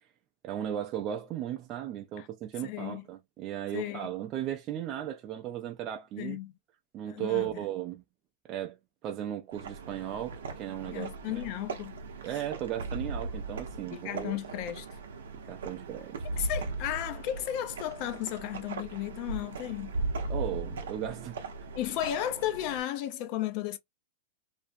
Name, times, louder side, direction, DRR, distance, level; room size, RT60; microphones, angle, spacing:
voice 1, 0.4-6.4 6.9-8.0 8.4-11.4 12.2-14.3 15.5-16.2 20.3-21.4, right 11 dB, 40° right, 0.4 m, -36 dB
voice 2, 2.6-3.0 3.7-4.1 6.2-6.5 7.1-7.6 10.9-12.0 13.9-14.9 16.4-19.9 21.8-23.8, left 12 dB, 50° left, 0.5 m, -34 dB
sound 1, 9.5-22.8, right 3 dB, 85° right, 0.6 m, -38 dB
2.5 x 2.1 x 2.5 m
hypercardioid pair, 115°, 0 cm